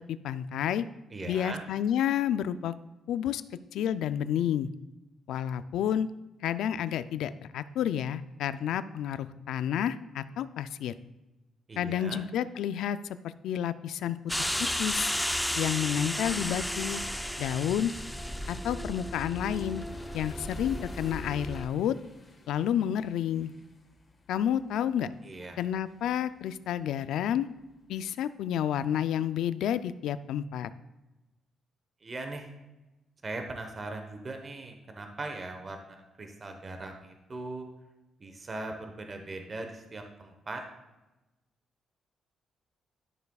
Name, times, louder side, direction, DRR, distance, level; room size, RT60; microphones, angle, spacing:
voice 1, 0.2-0.8 1.3-2.7 3.1-3.4 3.7-4.7 5.3-6.1 6.4-10.9 11.8-13.0 13.2-14.2 14.8-15.1 15.6-17.0 17.4-17.9 18.5-19.8 20.1-22.0 22.5-23.5 24.3-25.1 25.6-27.5 27.9-30.7, left 10 dB, 85° left, 14 dB, 0.3 m, -30 dB
voice 2, 1.1-1.6 11.7-12.2 25.2-25.6 32.0-32.5 33.2-37.7 38.2-40.6, right 2 dB, 35° right, 4 dB, 1.0 m, -40 dB
sound 1, 14.3-21.7, left 1 dB, 5° left, 0.5 m, -33 dB
sound 2, 15.9-28.0, left 2 dB, 35° left, 1.4 m, -56 dB
12.0 x 6.6 x 2.3 m, 1.0 s
cardioid pair, 100°, 0 cm